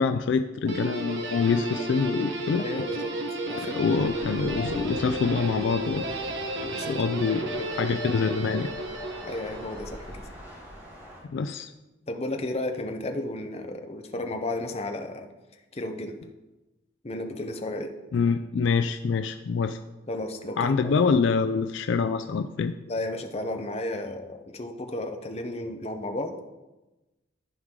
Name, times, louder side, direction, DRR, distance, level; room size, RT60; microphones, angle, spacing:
voice 1, 0.0-2.6 3.7-6.0 6.9-7.4 7.8-8.7 11.3-11.7 18.1-19.8 20.6-22.7, left 5 dB, 65° left, 8 dB, 0.3 m, -25 dB
Guitar, 0.7-10.0, right 1 dB, 60° right, 1.0 m, -33 dB
voice 2, 2.6-3.1 3.5-3.8 6.6-7.7 9.2-10.1 12.1-15.3 15.7-16.2 17.0-17.9 20.1-20.9 22.9-26.3, left 1 dB, 30° left, 5 dB, 0.7 m, -33 dB
Thunder / Rain, 3.8-11.2, equal, 10° right, 2.3 m, -43 dB
13.0 x 4.7 x 3.7 m, 1.1 s
head